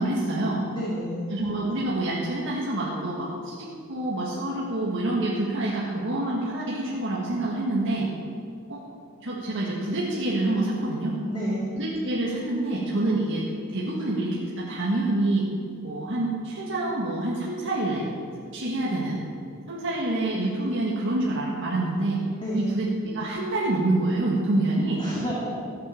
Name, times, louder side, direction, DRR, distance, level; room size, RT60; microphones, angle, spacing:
voice 1, 0.0-0.6 1.3-8.1 8.7-8.8 9.2-11.2 11.7-15.5 15.8-18.1 18.5-19.2 19.7-22.2 22.5-25.0, right 2 dB, 60° right, -5 dB, 1.8 m, -27 dB
voice 2, 0.7-1.2 11.3-11.7 22.4-22.7 25.0-25.5, equal, 25° left, -6 dB, 2.2 m, -29 dB
13.5 x 8.1 x 7.0 m, 2.3 s
head